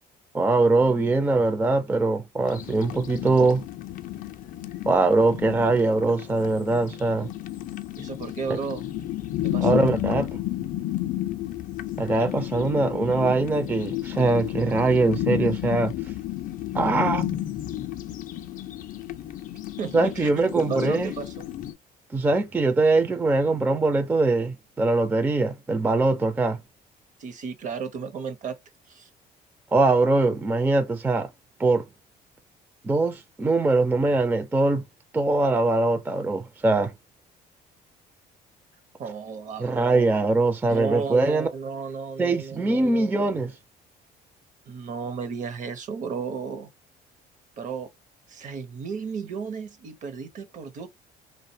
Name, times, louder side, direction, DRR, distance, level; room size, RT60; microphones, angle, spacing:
voice 1, 0.3-3.6 4.9-7.3 9.6-10.4 12.0-15.9 16.7-17.2 19.9-21.1 22.1-26.6 29.7-31.3 31.6-31.8 32.8-34.8 35.1-36.9 39.6-41.5 42.2-43.5, right 3 dB, 10° right, 0.3 m, -22 dB
sound 1, 2.5-21.7, left 14 dB, 55° left, 0.4 m, -32 dB
voice 2, 8.0-8.8 9.4-9.9 19.8-20.3 20.5-21.5 27.2-28.6 28.9-29.1 39.0-40.1 40.7-43.1 44.7-46.7 47.6-47.9 48.3-50.9, right 5 dB, 50° right, 0.6 m, -33 dB
2.5 x 2.1 x 2.6 m
cardioid pair, 110°, 17 cm